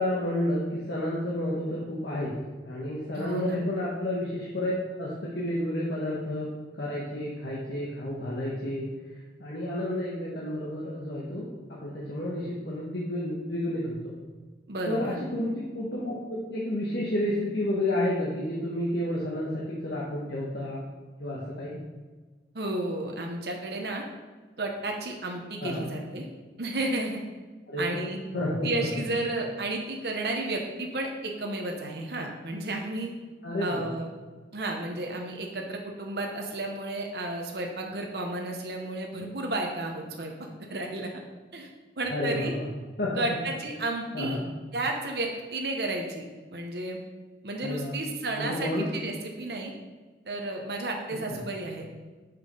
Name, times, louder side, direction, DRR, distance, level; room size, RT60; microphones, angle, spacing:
voice 1, 0.0-2.3 2.6-6.5 6.7-8.9 9.4-11.5 11.8-14.1 14.9-20.8 21.2-21.8 25.6-25.8 27.7-28.0 28.3-28.9 33.4-33.9 42.1-42.6 43.0-43.1 44.1-44.4 47.6-48.0 48.4-48.9 51.3-51.4, left 1 dB, 70° left, -6 dB, 1.3 m, -30 dB
voice 2, 3.1-3.6 14.7-15.2 22.5-24.0 24.6-26.2 26.6-27.2 27.8-28.2 28.6-33.1 33.6-34.1 34.5-41.1 41.5-41.7 42.0-42.5 43.2-44.4 44.7-46.2 46.5-47.0 47.4-49.7 50.3-51.9, right 2 dB, 65° right, 1 dB, 1.0 m, -32 dB
6.0 x 5.4 x 5.3 m, 1.3 s
head